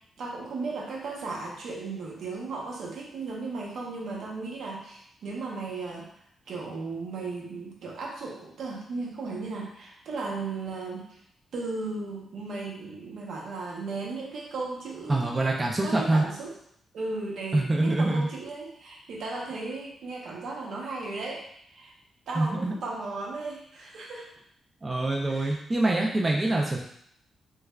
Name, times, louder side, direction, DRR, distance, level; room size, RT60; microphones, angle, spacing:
voice 1, 0.2-6.1 6.5-11.2 11.5-15.5 15.8-16.5 16.9-21.4 21.7-21.9 22.3-24.3 25.3-25.6, right 3 dB, 70° right, -2 dB, 0.8 m, -36 dB
voice 2, 15.1-16.2 17.5-18.3 22.4-22.7 24.8-26.8, right 2 dB, 20° right, -1 dB, 0.3 m, -25 dB
3.3 x 3.2 x 2.3 m, 0.69 s
wide cardioid pair, 160°, 0 cm